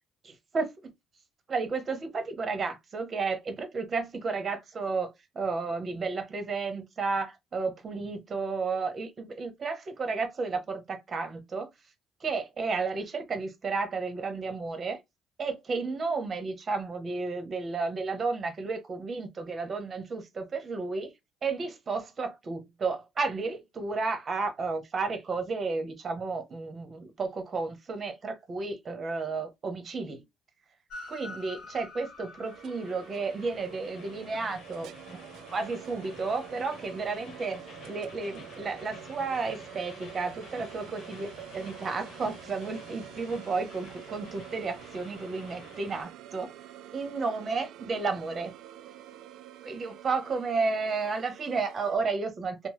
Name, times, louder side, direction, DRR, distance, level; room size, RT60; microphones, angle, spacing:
voice 1, 0.2-0.9 1.5-11.7 12.2-15.0 15.4-21.1 21.4-30.2 31.1-35.2 35.5-46.5 46.9-48.5 49.6-52.7, right 4 dB, 40° right, 0.9 m, -32 dB
Train, 30.9-46.0, left 3 dB, 60° left, 0.9 m, -49 dB
sound 1, 32.4-52.0, right 12 dB, 75° right, 0.3 m, -48 dB
2.9 x 2.1 x 3.0 m
cardioid pair, 85°, 0 cm